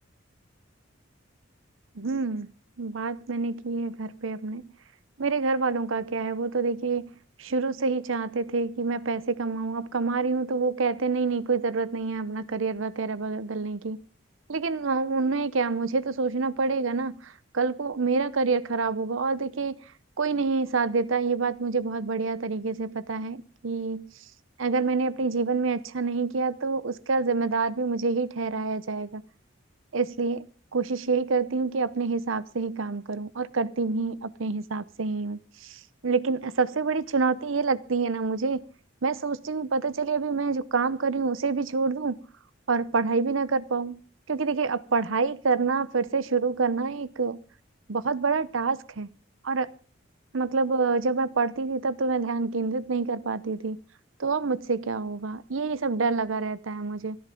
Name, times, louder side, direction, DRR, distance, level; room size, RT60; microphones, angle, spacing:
voice 1, 2.0-2.5 2.8-4.7 5.2-7.1 7.4-14.0 14.5-19.8 20.2-24.1 24.6-29.2 29.9-30.5 30.7-38.6 39.0-42.2 42.7-44.0 44.3-47.4 47.9-49.1 49.4-49.7 50.3-53.8 54.2-57.2, right 4 dB, 75° right, 0.8 m, -27 dB
25.5 x 10.5 x 3.8 m
head